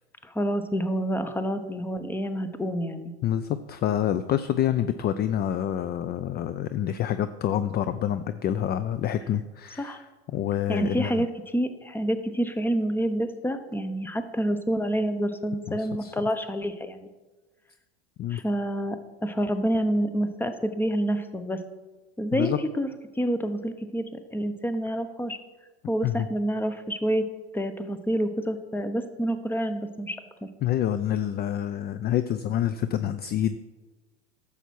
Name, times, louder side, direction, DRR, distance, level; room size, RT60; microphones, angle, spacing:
voice 1, 0.2-3.1 9.8-10.0 10.7-17.0 18.3-19.0 19.2-21.6 22.2-22.9 23.2-25.4 25.9-27.3 27.5-30.5, equal, 5° left, 10 dB, 0.8 m, -28 dB
voice 2, 3.2-11.2 15.7-16.1 18.2-18.4 22.3-22.6 26.0-26.3 30.6-33.6, left 10 dB, 30° left, 12 dB, 0.4 m, -27 dB
11.0 x 7.1 x 4.6 m, 1.2 s
hypercardioid pair, 90°, 32 cm